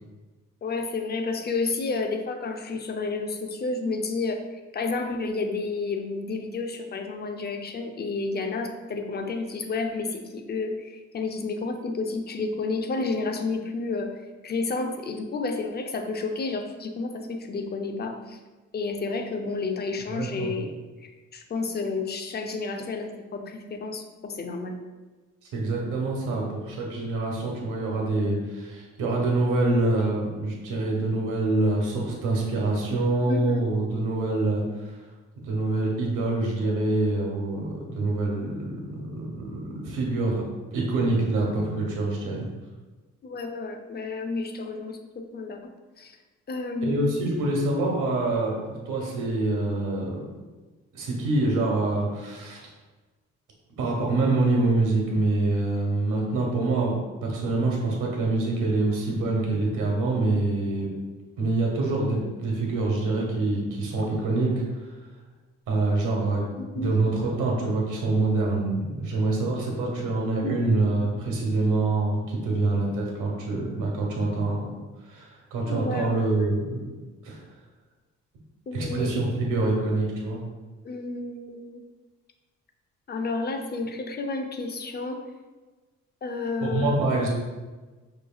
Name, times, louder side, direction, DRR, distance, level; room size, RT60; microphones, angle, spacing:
voice 1, 0.6-4.4 4.7-18.4 18.7-20.7 21.0-24.8 33.3-33.7 43.2-45.6 46.0-46.2 46.5-47.4 66.6-66.9 70.4-70.9 75.6-76.5 78.7-79.1 80.8-81.8 83.1-85.2 86.2-87.0, left 3 dB, 35° left, 4 dB, 0.5 m, -31 dB
voice 2, 20.1-20.5 25.5-35.0 35.4-40.4 40.7-42.4 46.8-50.2 50.9-52.7 53.8-56.9 57.2-60.9 61.4-64.5 64.8-64.9 65.7-66.4 66.7-74.8 75.0-76.8 77.2-77.4 78.7-80.4 86.6-87.3, right 2 dB, 85° right, -2 dB, 1.2 m, -25 dB
5.8 x 3.2 x 2.3 m, 1.3 s
cardioid pair, 90°, 30 cm